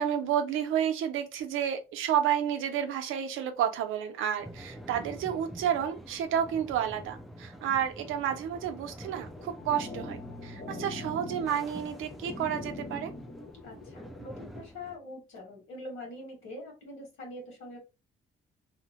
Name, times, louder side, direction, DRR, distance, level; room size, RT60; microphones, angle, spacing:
voice 1, 0.0-13.1, right 9 dB, 85° right, 0.6 m, -30 dB
sound 1, 4.4-15.0, equal, ahead, 0.4 m, -46 dB
sound 2, 9.2-14.2, left 2 dB, 40° left, 0.9 m, -42 dB
voice 2, 13.6-17.8, left 1 dB, 85° left, 1.5 m, -44 dB
2.8 x 2.0 x 2.9 m
cardioid pair, 90°, 20 cm